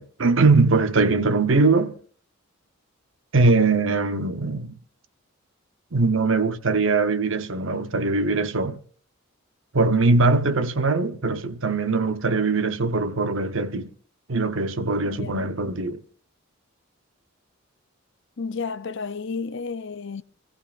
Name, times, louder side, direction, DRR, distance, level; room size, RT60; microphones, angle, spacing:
voice 1, 0.0-1.9 3.3-4.7 5.9-8.8 9.7-13.9 14.3-16.0, right 3 dB, 65° right, 0.9 m, -21 dB
voice 2, 15.1-15.4 18.4-20.2, left 5 dB, 60° left, 0.6 m, -32 dB
25.5 x 15.0 x 2.5 m
head